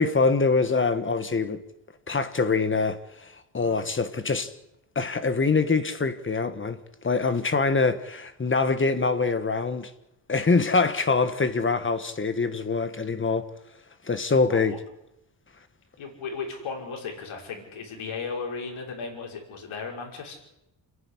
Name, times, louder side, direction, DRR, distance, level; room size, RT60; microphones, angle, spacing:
voice 1, 0.0-1.6 2.1-4.5 4.9-6.8 7.0-9.9 10.3-13.5 14.0-14.8, left 4 dB, 25° left, 1.5 m, -24 dB
voice 2, 3.5-3.9 14.5-14.8 16.0-20.4, left 5 dB, 90° left, 5.9 m, -36 dB
29.0 x 11.0 x 10.0 m
wide cardioid pair, 145°, 47 cm